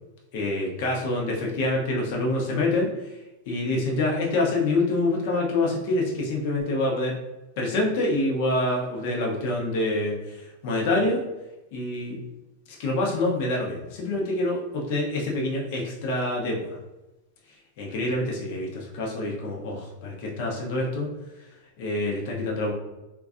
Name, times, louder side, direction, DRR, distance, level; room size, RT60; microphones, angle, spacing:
voice 1, 0.3-3.1 3.5-7.1 7.6-11.2 11.7-12.2 12.8-16.8 17.8-21.1 21.8-22.7, left 2 dB, 55° left, -2 dB, 0.6 m, -26 dB
2.5 x 2.2 x 2.4 m, 1.0 s
supercardioid pair, 150°, 0 cm